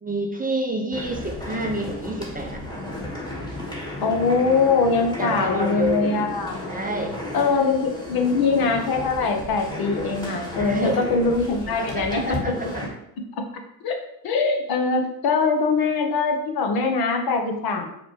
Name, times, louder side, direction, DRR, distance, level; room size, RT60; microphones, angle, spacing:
voice 1, 0.0-2.6 5.2-6.1 6.7-7.1 10.6-11.0 11.8-12.8, right 1 dB, 20° right, 1 dB, 0.5 m, -28 dB
sound 1, 0.9-12.9, left 1 dB, 10° left, 1.4 m, -33 dB
voice 2, 4.0-6.6 7.3-12.4 13.8-14.0 14.2-17.8, left 4 dB, 45° left, 4 dB, 0.8 m, -22 dB
4.9 x 2.1 x 3.0 m, 0.79 s
hypercardioid pair, 50°, 50 cm